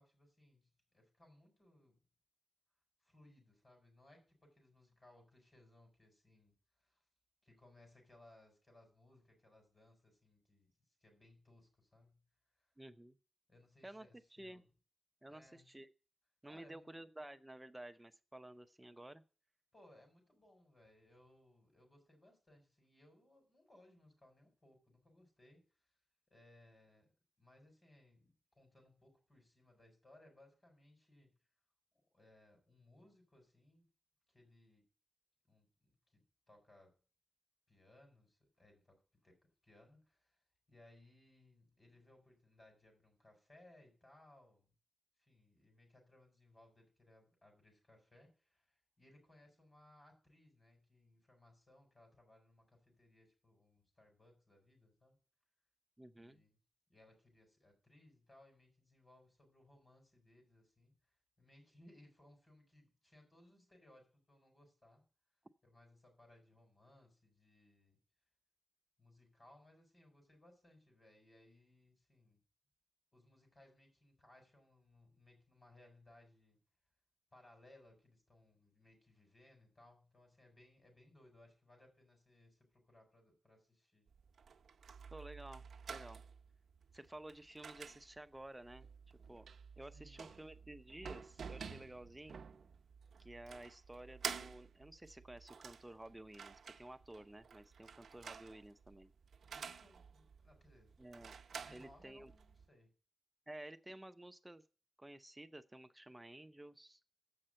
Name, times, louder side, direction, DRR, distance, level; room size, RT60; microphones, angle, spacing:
voice 1, 0.0-2.0 3.0-7.0 7.4-10.7 11.0-12.2 12.6-12.7 13.5-14.6 15.3-15.7 16.5-16.9 19.7-25.6 26.3-27.1 27.4-31.3 31.9-33.9 34.3-34.8 35.5-36.9 37.7-39.4 39.6-40.4 40.7-44.7 45.2-55.2 56.2-56.6 56.9-61.0 61.4-65.0 65.6-68.0 69.0-72.4 73.1-76.6 77.3-84.0 89.9-90.2 99.5-101.0 101.6-102.9, left 1 dB, 25° left, 3 dB, 4.4 m, -66 dB
voice 2, 12.8-13.2 13.8-14.1 14.4-14.6 15.2-15.9 16.4-19.2 56.0-56.4 85.1-86.2 86.9-89.5 89.8-92.5 93.2-99.1 101.0-101.3 101.7-102.3 103.5-104.6 105.0-107.0, right 1 dB, 10° right, 9 dB, 0.6 m, -53 dB
sound 1, 84.1-102.7, right 6 dB, 85° right, 0.6 m, -51 dB
7.8 x 5.5 x 7.5 m, 0.36 s
wide cardioid pair, 160°, 0 cm